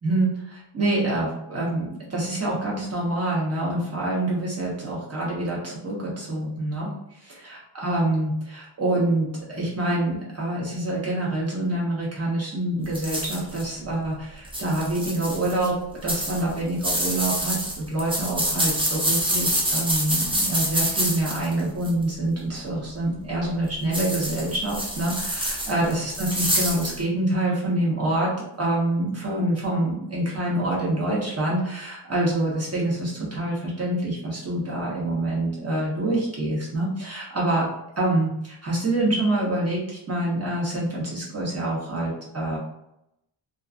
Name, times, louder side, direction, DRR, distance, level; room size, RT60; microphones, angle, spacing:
voice 1, 0.0-37.7 38.0-42.6, right 1 dB, 30° right, -5 dB, 0.8 m, -26 dB
sound 1, 12.9-13.6 14.4-15.7 16.1-22.0 23.9-27.0, right 1 dB, 15° right, 0.3 m, -26 dB
2.4 x 2.2 x 2.4 m, 0.82 s
wide cardioid pair, 160°, 48 cm